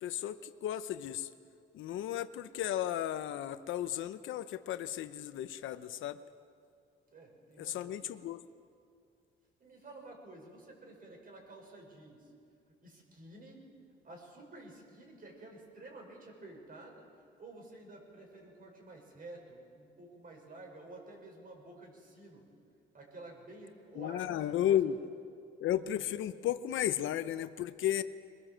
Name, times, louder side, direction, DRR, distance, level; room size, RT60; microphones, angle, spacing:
voice 1, 0.0-1.3 1.7-6.2 7.6-8.5 24.0-25.0 25.6-28.0, left 11 dB, 80° left, 12 dB, 0.8 m, -34 dB
voice 2, 7.1-8.0 9.6-12.3 12.7-13.6 14.0-22.4 22.9-25.0, right 2 dB, 45° right, 1 dB, 6.5 m, -51 dB
22.0 x 22.0 x 7.5 m, 2.3 s
cardioid pair, 90°, 20 cm